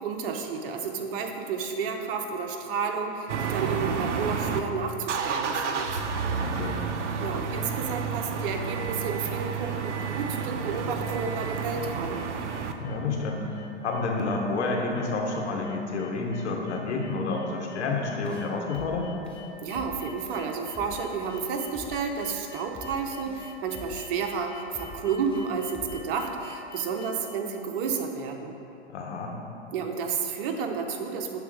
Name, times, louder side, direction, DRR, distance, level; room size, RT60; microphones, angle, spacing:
voice 1, 0.0-6.0 7.2-12.2 19.6-28.6 29.7-31.4, right 5 dB, 50° right, 4 dB, 0.8 m, -31 dB
sound 1, 3.3-4.6 5.0-12.7, right 6 dB, 90° right, 0.5 m, -30 dB
voice 2, 6.3-6.9 12.8-19.1 28.9-29.4, left 3 dB, 75° left, 0 dB, 1.1 m, -30 dB
sound 2, 9.2-27.1, left 5 dB, 35° left, 0.8 m, -48 dB
sound 3, 18.2-18.4 18.7-19.0 19.2-19.4 19.7-20.0 20.2-20.4 20.7-21.0 21.2-21.4 21.7-22.0 22.2-22.4 22.7-23.0 23.2-23.4 23.7-24.0 24.2-24.4 24.7-25.0 25.2-25.4 25.7-26.0, left 1 dB, 5° left, 0.4 m, -45 dB
6.8 x 3.6 x 4.8 m, 2.7 s
hypercardioid pair, 110°, 35 cm